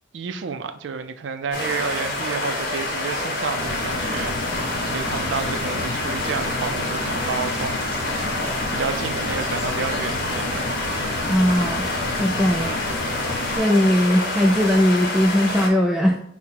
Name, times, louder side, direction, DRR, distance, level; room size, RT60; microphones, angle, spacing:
voice 1, 0.1-8.0 8.3-10.7 12.5-12.8, right 5 dB, 80° right, 0.4 m, -31 dB
sound 1, 1.5-15.7, left 2 dB, 50° left, 1.1 m, -27 dB
sound 2, 3.6-13.6, left 2 dB, 80° left, 0.7 m, -31 dB
voice 2, 11.2-11.9 12.2-12.8 13.6-16.2, equal, ahead, 0.3 m, -19 dB
5.9 x 2.1 x 4.1 m
head